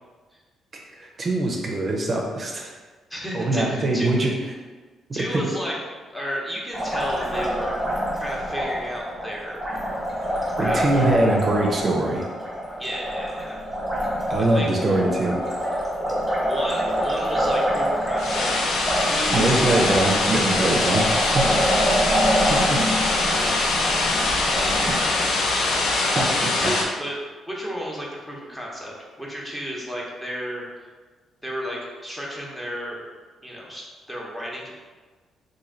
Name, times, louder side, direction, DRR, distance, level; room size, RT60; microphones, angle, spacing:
voice 1, 1.0-2.7 3.3-4.3 5.3-5.4 10.6-12.3 14.3-15.4 19.3-21.5 22.5-22.6 24.2-24.4 26.1-26.3, right 2 dB, 40° right, -1 dB, 0.5 m, -23 dB
voice 2, 3.1-4.3 5.1-5.7 6.1-7.8 8.2-9.6 10.5-10.9 12.8-13.6 14.3-14.7 16.4-18.7 19.0-19.8 22.3-22.6 22.9-23.6 24.3-25.5 26.4-27.2 27.5-28.9 29.2-30.9 31.4-33.0 33.4-34.7, equal, 10° left, -4 dB, 0.9 m, -33 dB
Liquid, 6.7-26.3, equal, 10° right, 1.2 m, -26 dB
sound 1, 18.2-26.8, left 2 dB, 75° left, 0.5 m, -23 dB
3.0 x 2.6 x 3.8 m, 1.4 s
cardioid pair, 90°, 0 cm